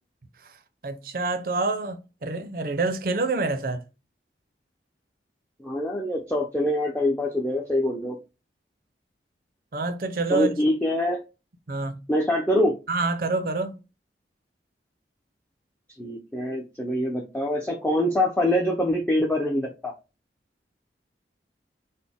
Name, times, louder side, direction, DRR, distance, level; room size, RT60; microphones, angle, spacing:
voice 1, 0.8-3.8 9.7-10.6 11.7-12.0 12.9-13.8, right 3 dB, 50° right, 0.5 m, -27 dB
voice 2, 5.6-8.2 10.3-11.2 12.1-12.8 16.0-19.9, left 1 dB, 10° left, 0.4 m, -24 dB
4.0 x 2.1 x 3.4 m
head